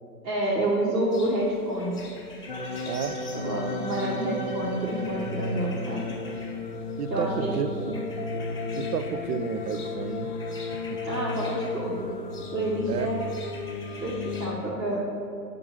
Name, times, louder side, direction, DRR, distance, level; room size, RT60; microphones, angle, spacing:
voice 1, 0.2-2.0 3.3-6.0 7.1-7.6 11.0-12.1 12.5-13.3 14.0-15.0, right 1 dB, 80° right, -5 dB, 1.3 m, -28 dB
sound 1, 1.1-14.5, left 3 dB, 10° left, 1.1 m, -47 dB
sound 2, 2.5-14.6, left 3 dB, 30° left, 0.5 m, -33 dB
voice 2, 2.9-3.3 7.0-8.3 8.8-10.3 10.9-11.0 12.9-13.1, right 8 dB, 65° right, 12 dB, 0.5 m, -32 dB
6.9 x 3.7 x 6.1 m, 2.6 s
figure-of-eight pair, 115°, 50 cm